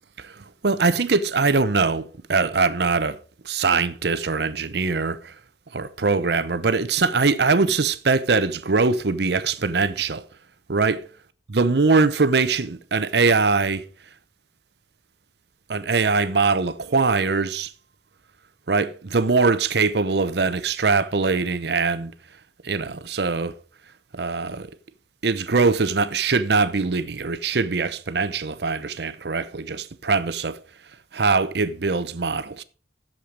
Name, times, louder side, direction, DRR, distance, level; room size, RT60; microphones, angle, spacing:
voice 1, 0.2-3.2 3.4-5.3 5.7-10.2 10.7-11.0 11.5-13.8 15.7-17.7 18.7-22.1 22.6-23.6 24.1-24.7 25.2-30.6 31.1-32.6, right 4 dB, 70° right, 0.8 m, -22 dB
11.5 x 7.5 x 5.1 m
head